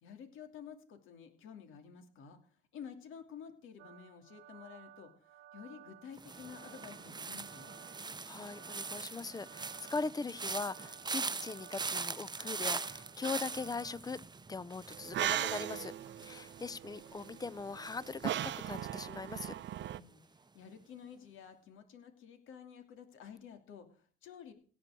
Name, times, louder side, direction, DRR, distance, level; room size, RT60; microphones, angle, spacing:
voice 1, 0.0-7.8 19.7-24.5, left 7 dB, 85° left, 7 dB, 2.8 m, -51 dB
sound 1, 3.8-14.0, right 11 dB, 80° right, 1.2 m, -57 dB
sound 2, 6.2-19.2 19.5-19.9, right 4 dB, 20° right, 0.7 m, -42 dB
voice 2, 8.0-14.2 14.5-15.9 16.2-19.5, left 4 dB, 20° left, 22 dB, 0.5 m, -40 dB
sound 3, 14.9-20.0, right 12 dB, 65° right, 0.8 m, -38 dB
17.5 x 6.1 x 7.6 m, 0.41 s
cardioid pair, 90°, 20 cm